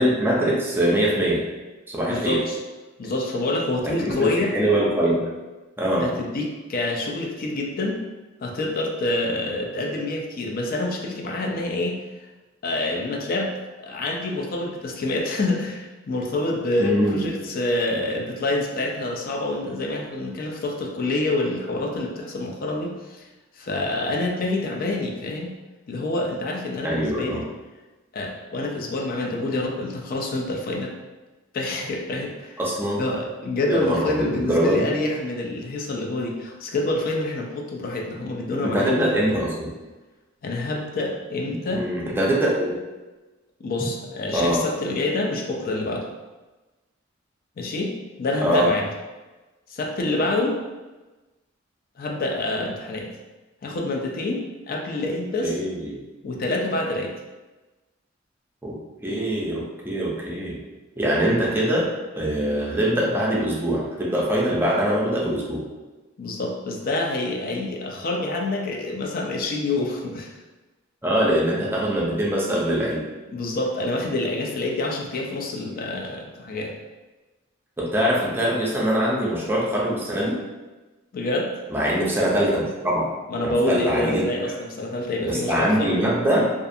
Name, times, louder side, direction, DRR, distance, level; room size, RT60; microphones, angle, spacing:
voice 1, 0.0-1.4 1.9-2.4 3.8-5.2 5.8-6.1 16.8-17.3 26.8-27.4 32.6-33.0 33.7-34.9 38.6-39.7 41.7-42.8 44.3-44.6 48.4-48.7 55.4-56.0 58.6-58.8 59.0-60.6 61.0-61.9 62.2-65.6 71.0-73.0 77.8-80.4 81.7-83.1 83.4-84.3 85.3-86.5, right 1 dB, 10° right, -4 dB, 0.5 m, -23 dB
voice 2, 2.1-2.6 3.0-4.6 6.0-8.0 8.4-12.0 12.6-13.5 13.8-23.2 23.6-25.5 25.9-27.4 28.1-30.9 31.5-32.6 33.0-39.4 40.4-41.8 43.6-46.1 47.6-47.9 48.2-48.9 49.7-50.6 52.0-53.1 53.6-55.6 56.2-57.1 66.2-70.4 73.3-76.7 81.1-81.5 83.3-86.0, left 2 dB, 45° left, 1 dB, 0.4 m, -27 dB
2.4 x 2.3 x 2.6 m, 1.2 s
head